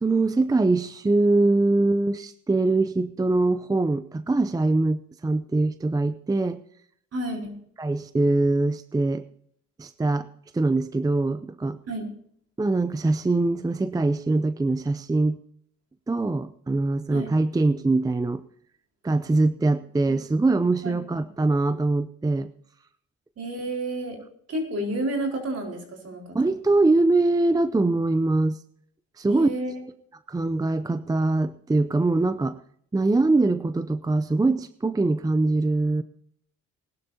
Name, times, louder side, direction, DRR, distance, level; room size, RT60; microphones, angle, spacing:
voice 1, 0.0-6.6 7.8-9.2 9.8-10.3 10.5-11.8 12.6-15.4 16.1-18.4 19.0-22.5 26.3-28.6 29.2-29.5 30.3-32.6 32.9-36.0, right 2 dB, 10° right, 13 dB, 0.5 m, -23 dB
voice 2, 7.1-7.5 11.9-12.1 17.1-17.3 20.8-21.2 23.4-24.2 24.5-26.4 29.2-29.7, right 1 dB, 55° right, 1 dB, 4.4 m, -31 dB
20.5 x 12.0 x 2.8 m, 0.65 s
cardioid pair, 90°, 30 cm